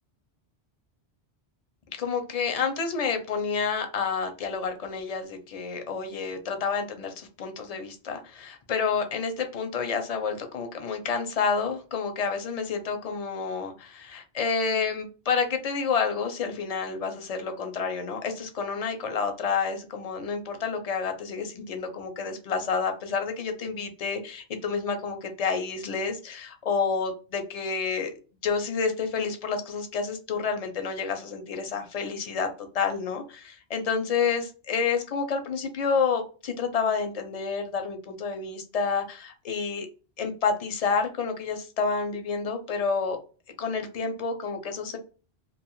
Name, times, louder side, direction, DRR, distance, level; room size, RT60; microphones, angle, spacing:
voice 1, 1.9-28.1 28.4-32.5 32.7-39.9 40.2-43.2 43.6-45.0, left 5 dB, 45° left, 6 dB, 0.5 m, -29 dB
2.6 x 2.3 x 3.0 m, 0.35 s
omnidirectional pair, 1.1 m